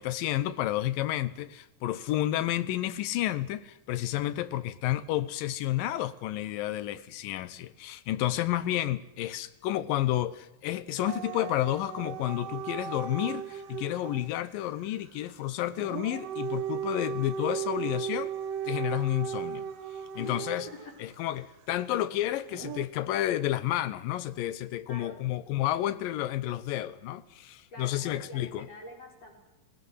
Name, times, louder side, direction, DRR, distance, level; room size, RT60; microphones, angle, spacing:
voice 1, 0.0-18.3 18.7-19.7 20.2-20.7 21.0-28.7, left 14 dB, 80° left, 2.6 m, -31 dB
Dog / Siren, 11.0-14.3 15.7-20.9 22.5-22.8, right 8 dB, 65° right, 1.7 m, -36 dB
voice 2, 20.2-20.9 24.9-25.2 25.8-26.0 27.7-29.3, left 2 dB, 45° left, 6.1 m, -46 dB
19.0 x 17.5 x 9.8 m
omnidirectional pair, 4.0 m